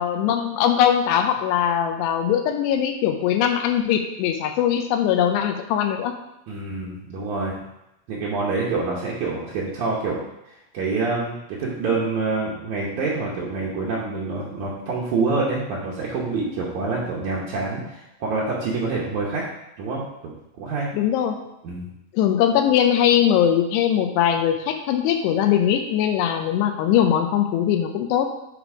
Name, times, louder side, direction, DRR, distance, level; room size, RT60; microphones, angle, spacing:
voice 1, 0.0-6.2 20.9-21.4 22.1-28.3, left 9 dB, 85° left, 6 dB, 2.7 m, -21 dB
voice 2, 6.5-7.6 8.1-10.2 10.5-19.4 19.8-20.9 21.6-21.9, right 3 dB, 80° right, -5 dB, 1.7 m, -26 dB
9.9 x 3.3 x 4.9 m, 0.89 s
omnidirectional pair, 4.9 m